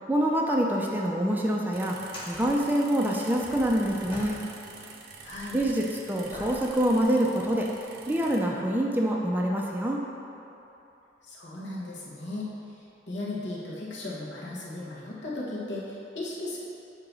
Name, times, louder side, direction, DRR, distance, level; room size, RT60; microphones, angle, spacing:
voice 1, 0.1-2.0 2.3-4.4 5.5-7.7 8.1-10.0, right 1 dB, 10° right, -1 dB, 0.5 m, -26 dB
sound 1, 1.7-8.4, right 5 dB, 60° right, 0.7 m, -47 dB
sound 2, 1.9-4.8 5.1-7.8 8.5-8.6 12.7-12.9 14.2-14.3, left 1 dB, 25° left, 1.4 m, -46 dB
voice 2, 5.2-5.6 11.2-12.5 13.1-16.6, left 2 dB, 70° left, -5 dB, 1.5 m, -36 dB
8.6 x 2.9 x 6.1 m, 2.9 s
head